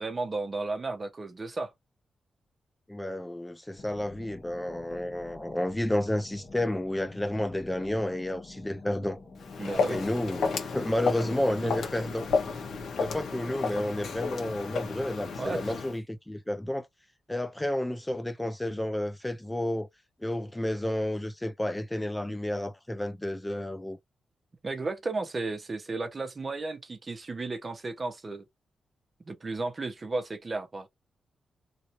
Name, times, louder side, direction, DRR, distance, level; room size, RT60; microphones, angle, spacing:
voice 1, 0.0-1.7 9.6-10.0 11.6-11.7 15.4-15.7 24.6-28.4 29.3-30.9, right 3 dB, 35° right, 0.9 m, -34 dB
voice 2, 2.9-9.2 9.9-12.3 13.0-16.9 17.3-19.9 20.2-24.0, left 1 dB, 10° left, 0.4 m, -31 dB
sound 1, 3.8-12.6, left 3 dB, 40° left, 1.3 m, -49 dB
Walk footsteps, 9.4-16.0, left 4 dB, 75° left, 1.1 m, -32 dB
3.1 x 2.7 x 2.8 m
cardioid pair, 100°, 0 cm